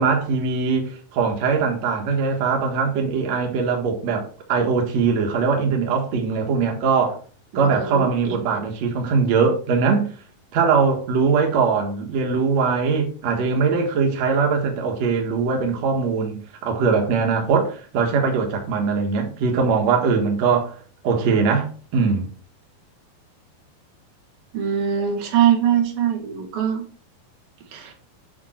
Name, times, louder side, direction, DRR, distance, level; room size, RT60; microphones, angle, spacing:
voice 1, 0.0-7.2 7.5-10.1 10.5-20.7 21.0-22.3, right 5 dB, 55° right, 2.6 m, -21 dB
voice 2, 7.5-8.4 24.5-26.9 27.7-27.9, right 9 dB, 80° right, 3.5 m, -22 dB
9.0 x 5.6 x 4.5 m
omnidirectional pair, 4.2 m